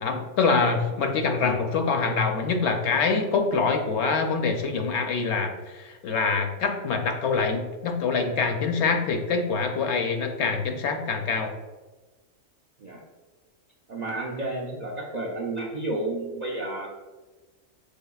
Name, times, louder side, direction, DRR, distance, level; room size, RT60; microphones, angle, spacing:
voice 1, 0.0-11.5, left 4 dB, 70° left, 4 dB, 0.8 m, -25 dB
voice 2, 13.9-16.9, right 2 dB, 60° right, -2 dB, 0.4 m, -31 dB
5.3 x 3.6 x 2.3 m, 1.2 s
omnidirectional pair, 1.3 m